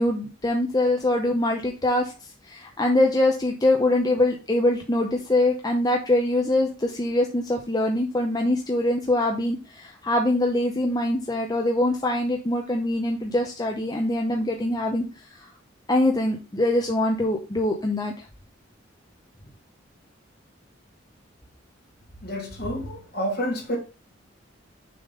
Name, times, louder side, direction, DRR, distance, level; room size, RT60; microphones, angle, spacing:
voice 1, 0.0-15.5 15.9-18.3, left 1 dB, 20° left, 0.7 m, -23 dB
voice 2, 22.2-23.8, equal, 55° left, 3.1 m, -29 dB
6.8 x 3.7 x 5.1 m
head